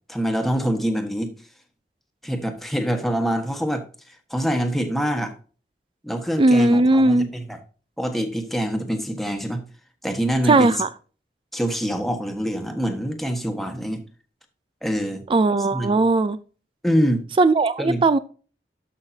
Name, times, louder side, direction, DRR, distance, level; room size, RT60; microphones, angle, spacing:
voice 1, 0.1-1.3 2.2-3.8 4.3-5.3 6.0-7.6 8.0-9.6 10.0-10.7 11.5-14.0 14.8-15.2 15.7-16.0 16.8-17.2 17.8-18.0, equal, ahead, 1.4 m, -25 dB
voice 2, 6.4-7.3 10.4-10.9 15.3-16.4 17.4-18.2, right 2 dB, 30° right, 0.4 m, -18 dB
13.0 x 5.8 x 2.7 m
head